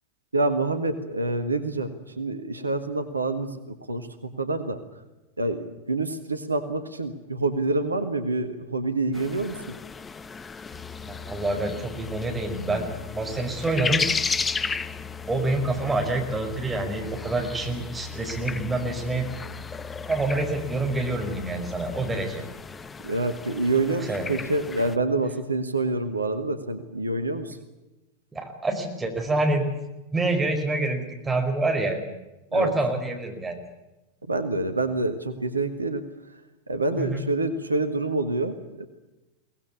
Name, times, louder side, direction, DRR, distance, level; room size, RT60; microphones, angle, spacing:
voice 1, 0.3-1.9 2.2-4.8 5.4-9.8 22.0-22.1 23.0-27.6 32.5-32.7 34.3-36.0 36.7-38.9, right 2 dB, 80° right, 9 dB, 1.7 m, -27 dB
sound 1, 9.1-25.0, left 5 dB, 15° left, 0.8 m, -35 dB
Boat Water vehicle, 10.7-22.2, left 7 dB, 45° left, 1.9 m, -42 dB
voice 2, 11.0-12.9 13.1-14.0 15.3-19.3 20.1-22.4 24.0-24.3 28.3-29.6 30.1-32.0 32.5-33.6 37.0-37.2, right 2 dB, 10° right, 2 dB, 4.9 m, -27 dB
23.0 x 19.0 x 8.4 m, 1.0 s
figure-of-eight pair, 90°, 0 cm